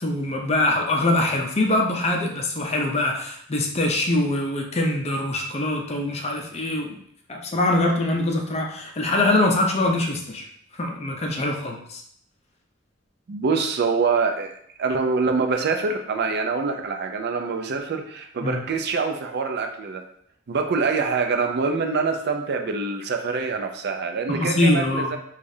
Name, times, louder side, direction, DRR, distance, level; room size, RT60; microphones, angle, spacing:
voice 1, 0.0-7.0 7.3-10.4 10.7-12.0 18.4-18.7 24.3-25.1, left 2 dB, 35° left, 1 dB, 0.5 m, -23 dB
voice 2, 13.3-14.5 14.8-20.0 20.5-25.2, right 4 dB, 55° right, 5 dB, 0.4 m, -25 dB
4.9 x 2.4 x 2.7 m, 0.67 s
head